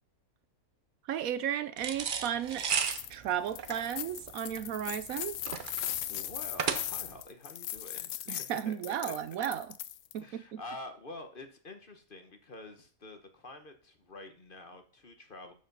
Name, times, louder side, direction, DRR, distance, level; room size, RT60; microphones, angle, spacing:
voice 1, 1.1-2.7 3.1-5.4 8.3-9.7 10.1-10.6, right 9 dB, 70° right, 1.0 m, -34 dB
sound 1, 1.8-7.2, right 6 dB, 50° right, 0.6 m, -35 dB
sound 2, 2.6-3.1 3.5-10.2, left 12 dB, 70° left, 0.9 m, -39 dB
voice 2, 6.1-8.3 8.6-8.7 9.0-9.1 10.2-15.5, left 2 dB, 40° left, 1.1 m, -47 dB
11.5 x 4.9 x 5.3 m
omnidirectional pair, 1.6 m